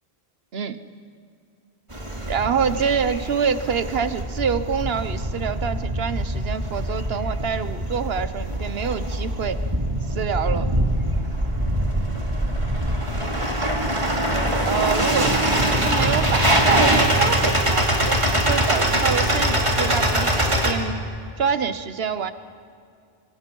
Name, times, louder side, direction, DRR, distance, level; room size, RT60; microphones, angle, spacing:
sound 1, 1.9-20.7, right 1 dB, 30° right, 2.8 m, -23 dB
voice 1, 2.3-9.6 10.1-10.7 14.6-20.9 21.4-22.3, right 6 dB, 70° right, 12 dB, 1.2 m, -26 dB
26.0 x 26.0 x 5.5 m, 2.4 s
omnidirectional pair, 1.0 m